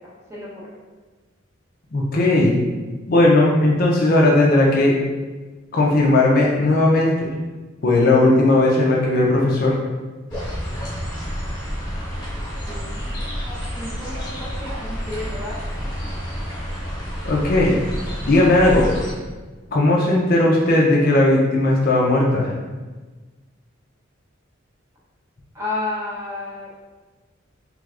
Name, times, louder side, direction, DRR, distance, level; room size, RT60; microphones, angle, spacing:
voice 1, 0.3-0.6 12.7-15.5 25.5-26.7, left 2 dB, 15° right, -7 dB, 0.8 m, -32 dB
voice 2, 1.9-2.6 3.1-5.0 5.7-7.3 7.8-9.7 17.2-17.8 18.2-18.9 19.7-22.5, left 2 dB, 45° left, -3 dB, 0.5 m, -17 dB
sound 1, 10.3-19.1, equal, 20° left, 1.3 m, -29 dB
3.3 x 3.3 x 2.4 m, 1.3 s
head